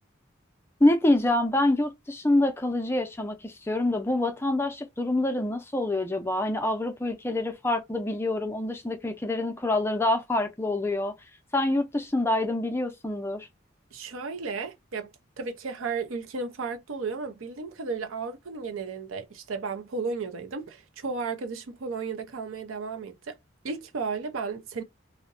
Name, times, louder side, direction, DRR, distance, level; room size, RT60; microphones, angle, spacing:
voice 1, 0.8-11.1 11.5-13.5, left 1 dB, 10° left, 0.4 m, -26 dB
voice 2, 13.9-15.1 15.4-23.4 23.6-24.8, right 4 dB, 90° right, 0.5 m, -34 dB
2.7 x 2.1 x 2.5 m
head